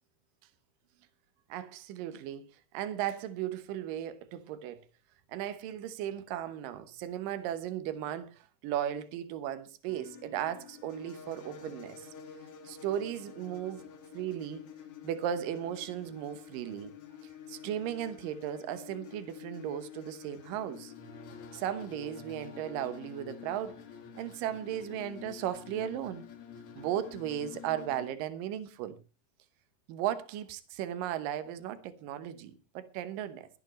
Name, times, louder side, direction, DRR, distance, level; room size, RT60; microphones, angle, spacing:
voice 1, 1.5-2.5 2.7-4.8 5.3-12.1 12.6-13.9 14.1-14.6 15.0-16.9 17.2-20.9 21.5-23.8 24.1-26.2 26.8-29.0 29.9-33.5, right 10 dB, 75° right, 2.6 m, -36 dB
Drone Synth Dark Dramatic Atmo Background Cinematic, 9.9-28.1, left 7 dB, 50° left, 2.1 m, -49 dB
22.5 x 9.3 x 3.1 m
omnidirectional pair, 4.2 m